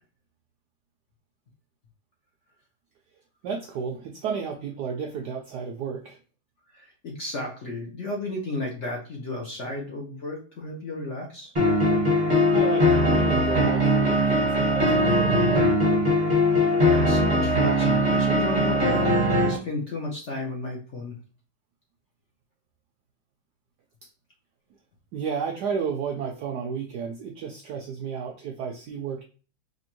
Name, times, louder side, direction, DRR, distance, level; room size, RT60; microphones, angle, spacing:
voice 1, 3.4-6.2 12.5-15.8 25.1-29.2, right 6 dB, 90° right, 2 dB, 0.9 m, -32 dB
voice 2, 6.7-11.5 16.5-21.1, left 2 dB, 60° left, 0 dB, 0.7 m, -34 dB
sound 1, 11.5-19.6, equal, 25° right, 0.7 m, -21 dB
4.2 x 2.7 x 2.9 m, 0.36 s
omnidirectional pair, 2.3 m